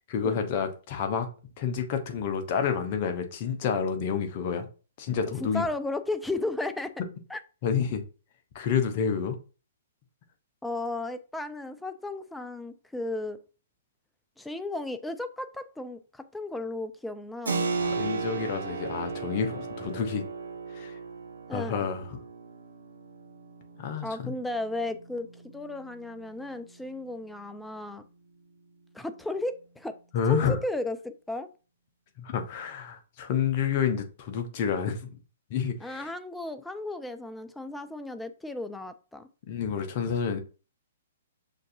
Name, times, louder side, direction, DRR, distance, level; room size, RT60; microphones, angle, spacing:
voice 1, 0.1-1.3 1.6-4.6 5.0-5.6 7.6-8.0 8.5-9.4 17.8-20.2 20.7-21.0 21.5-22.0 23.8-24.3 30.1-30.6 32.2-35.2 35.5-36.1 39.5-40.4, left 7 dB, 45° left, 0.8 m, -29 dB
voice 2, 5.4-6.9 7.3-7.4 10.6-13.4 14.4-17.7 21.5-21.9 24.0-28.0 28.9-30.0 30.3-31.5 35.8-39.3, left 2 dB, 5° left, 0.4 m, -34 dB
Keyboard (musical), 17.5-27.8, right 4 dB, 80° right, 0.8 m, -37 dB
6.4 x 2.6 x 2.7 m
figure-of-eight pair, 120°, 0 cm